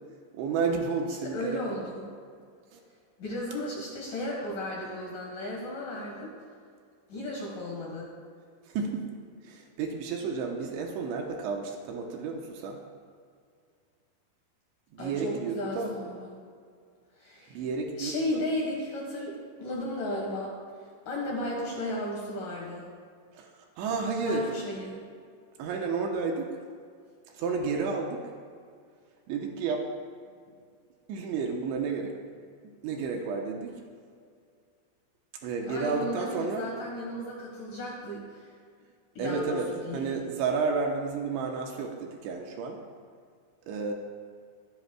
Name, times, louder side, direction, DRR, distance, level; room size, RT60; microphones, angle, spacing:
voice 1, 0.3-1.8 2.7-2.8 8.7-9.2 9.4-12.8 14.9-15.9 17.5-18.4 23.4-23.5 23.8-24.5 25.6-26.5 27.4-28.2 29.3-29.8 31.1-32.1 32.8-33.7 35.4-36.7 39.2-42.8 43.7-43.9, right 4 dB, 80° right, 1 dB, 3.1 m, -31 dB
voice 2, 1.1-2.1 3.2-6.3 7.1-8.1 15.0-16.4 17.2-17.6 18.0-20.6 21.1-22.9 24.2-25.0 35.7-38.5 39.2-40.2, left 1 dB, 60° left, -3 dB, 2.4 m, -35 dB
23.0 x 10.5 x 2.3 m, 2.2 s
omnidirectional pair, 5.6 m